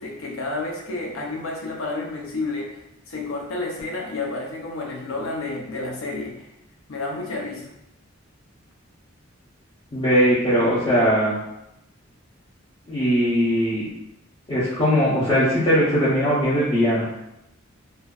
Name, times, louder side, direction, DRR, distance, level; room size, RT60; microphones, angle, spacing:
voice 1, 0.0-6.5 6.9-7.7, left 2 dB, 80° left, -1 dB, 0.6 m, -30 dB
voice 2, 9.9-11.4 12.9-13.8 14.5-17.1, equal, 25° left, -11 dB, 0.6 m, -20 dB
2.5 x 2.2 x 2.3 m, 0.86 s
head